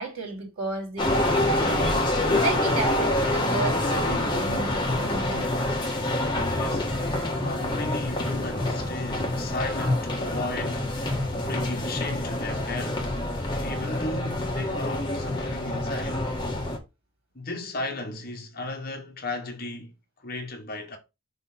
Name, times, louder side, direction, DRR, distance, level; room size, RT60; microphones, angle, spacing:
voice 1, 0.0-2.1 2.4-5.5, right 3 dB, 75° right, 3.3 m, -33 dB
sound 1, 1.0-16.8, left 1 dB, 20° left, 1.4 m, -26 dB
voice 2, 6.5-7.2 7.4-13.2 13.6-16.3 17.3-19.9 20.2-21.0, left 2 dB, 45° left, 1.4 m, -35 dB
6.3 x 3.2 x 5.7 m
head